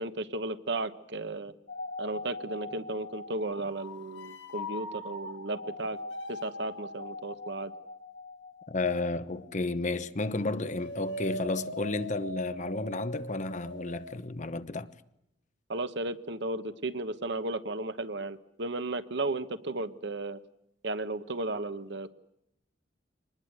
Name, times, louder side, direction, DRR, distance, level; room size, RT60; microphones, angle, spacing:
voice 1, 0.0-1.5 2.0-6.0 6.3-7.7 15.7-20.4 20.8-22.1, right 2 dB, 65° right, 1.2 m, -34 dB
sound 1, 1.7-9.9 10.2-14.2, left 1 dB, 70° left, 1.9 m, -41 dB
voice 2, 8.7-14.9, left 2 dB, 40° left, 1.0 m, -32 dB
24.5 x 20.0 x 8.0 m
head